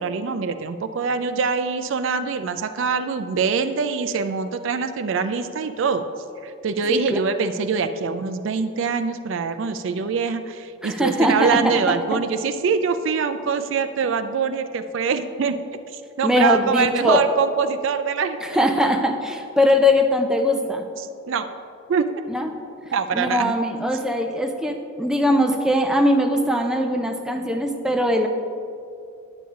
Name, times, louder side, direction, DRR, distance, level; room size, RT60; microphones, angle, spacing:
voice 1, 0.0-6.0 6.4-15.6 15.9-18.6 21.0-21.5 21.9-22.2 22.9-23.5, right 5 dB, 60° right, 9 dB, 0.4 m, -24 dB
voice 2, 10.8-12.2 16.2-17.2 18.4-20.8 22.3-22.5 23.1-28.3, left 1 dB, 5° right, 3 dB, 0.4 m, -21 dB
9.9 x 7.0 x 3.7 m, 2.6 s
head